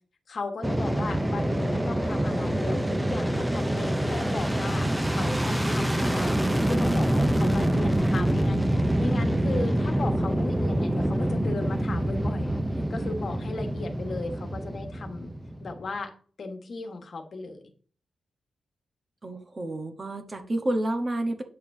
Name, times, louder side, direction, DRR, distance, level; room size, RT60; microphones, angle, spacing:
voice 1, 0.3-4.9 5.1-6.3 6.6-12.5 12.9-15.3 15.6-16.1 16.4-17.6, left 3 dB, 45° left, 4 dB, 1.4 m, -36 dB
Fixed-wing aircraft airplane, 0.6-15.8, right 1 dB, 5° right, 0.6 m, -26 dB
voice 2, 19.2-21.4, right 1 dB, 25° right, 5 dB, 1.0 m, -29 dB
8.7 x 6.7 x 2.7 m, 0.43 s
wide cardioid pair, 150°, 0 cm